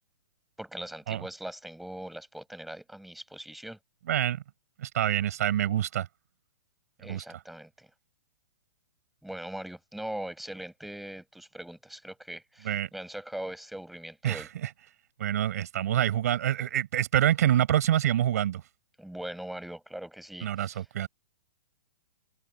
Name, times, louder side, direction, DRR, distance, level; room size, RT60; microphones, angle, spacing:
voice 1, 0.6-3.8 7.0-7.9 9.2-14.5 19.0-20.9, right 1 dB, ahead, 6.4 m, -41 dB
voice 2, 4.1-4.4 4.8-6.1 7.0-7.2 12.6-12.9 14.2-14.7 15.2-18.6 20.4-21.1, right 11 dB, 45° right, 5.3 m, -26 dB
hypercardioid pair, 175°, 11 cm